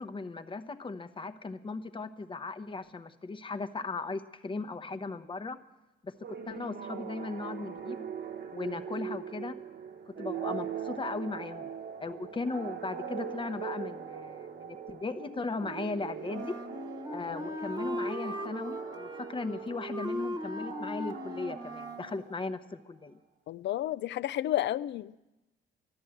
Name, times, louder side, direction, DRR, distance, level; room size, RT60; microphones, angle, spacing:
voice 1, 0.0-5.6 6.0-8.1 8.5-9.6 10.1-11.7 12.0-16.6 17.1-23.2, left 3 dB, 25° left, 9 dB, 0.8 m, -37 dB
sound 1, 6.2-22.6, right 7 dB, 55° right, 1.1 m, -41 dB
Wind instrument woodwind instrument, 16.3-22.1, equal, 20° right, 1.2 m, -38 dB
voice 2, 23.5-25.2, left 13 dB, 65° left, 19 dB, 0.4 m, -32 dB
12.5 x 11.5 x 7.8 m, 1.0 s
cardioid pair, 90°, 20 cm